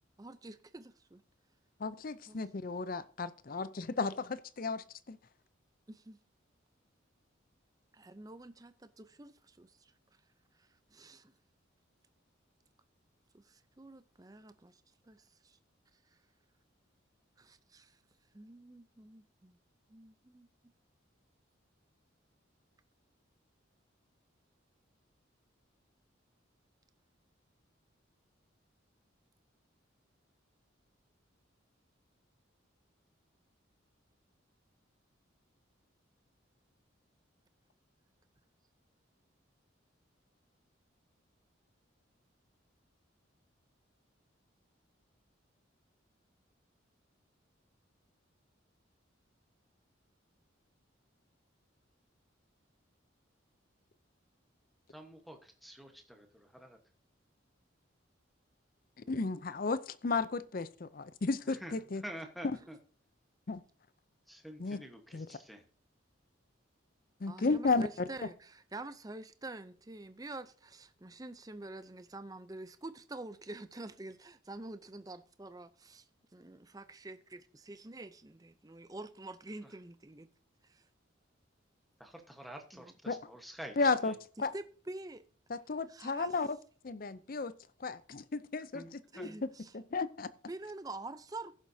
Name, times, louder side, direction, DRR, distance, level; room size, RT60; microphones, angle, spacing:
voice 1, 0.2-1.2 2.3-2.4 5.9-6.2 7.9-9.9 10.9-11.3 13.3-14.8 15.1-15.2 15.4-15.6 17.4-17.9 18.3-19.6 19.9-20.5 67.3-76.0 76.3-80.3 80.7-80.8 82.7-82.8 84.4-85.2 85.9-86.3 89.1-89.7 90.5-91.5, right 2 dB, 20° right, 0.5 m, -47 dB
voice 2, 1.8-5.2 59.1-62.0 63.5-63.6 64.6-64.8 65.1-65.3 67.2-67.9 83.1-83.2 83.8-84.1 84.4-84.5 85.5-86.6 86.8-87.5 87.8-88.8 89.2-89.3 89.7-90.3, left 4 dB, 45° left, 0.5 m, -33 dB
voice 3, 54.9-56.8 61.4-62.8 64.3-65.6 79.6-79.7 82.0-84.2 88.7-89.4, equal, ahead, 1.1 m, -48 dB
15.5 x 7.3 x 2.7 m
head